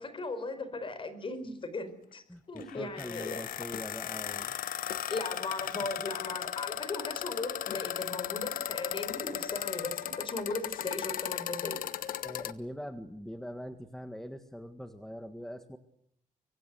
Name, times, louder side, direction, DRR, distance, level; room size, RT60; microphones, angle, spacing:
voice 1, 0.0-3.4 5.1-11.8, left 3 dB, 35° left, 12 dB, 4.7 m, -38 dB
voice 2, 2.3-4.6 5.6-5.9 12.2-15.8, equal, 5° left, 7 dB, 1.7 m, -43 dB
sound 1, 2.6-12.5, left 10 dB, 85° left, 1.2 m, -36 dB
24.5 x 24.0 x 7.9 m, 0.71 s
cardioid pair, 115°, 14 cm